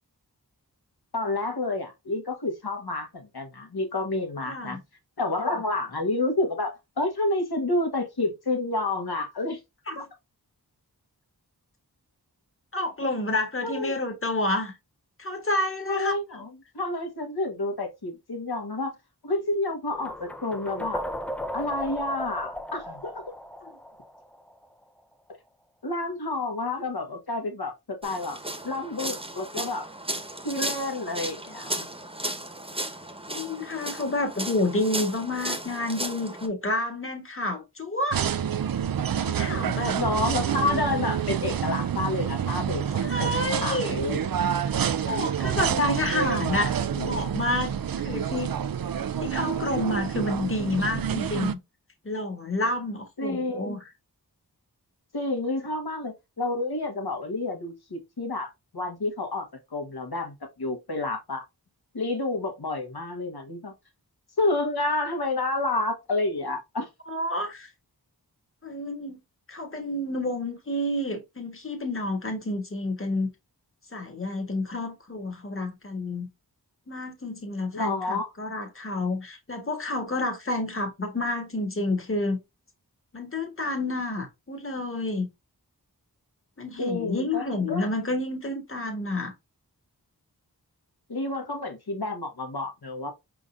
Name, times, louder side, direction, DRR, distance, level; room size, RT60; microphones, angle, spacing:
voice 1, 1.1-4.8 5.2-9.6 10.0-10.1 13.6-13.9 15.9-16.5 16.7-18.9 19.2-21.0 21.5-23.3 25.8-28.4 28.6-29.8 30.4-31.9 33.6-33.8 39.9-42.8 43.2-43.3 43.6-44.3 53.2-53.8 55.1-59.5 59.7-61.4 61.9-63.7 64.4-66.9 77.7-78.3 86.8-87.8 91.1-93.1, left 2 dB, 70° left, 1.4 m, -29 dB
voice 2, 4.5-4.8 9.9-10.0 12.7-14.7 15.2-16.4 23.6-23.7 33.3-38.2 39.2-40.0 43.0-44.0 44.5-44.7 45.0-48.6 49.2-51.6 52.0-53.8 67.1-67.7 68.6-69.2 69.5-73.3 73.9-76.3 76.9-82.4 83.1-85.3 86.6-89.3, left 2 dB, 35° left, 1.4 m, -29 dB
sound 1, 19.9-24.8, equal, 5° left, 0.5 m, -36 dB
sound 2, 28.0-36.5, right 1 dB, 15° right, 1.1 m, -35 dB
sound 3, 38.1-51.5, right 8 dB, 60° right, 0.5 m, -28 dB
5.2 x 3.7 x 2.5 m
wide cardioid pair, 40°, 39 cm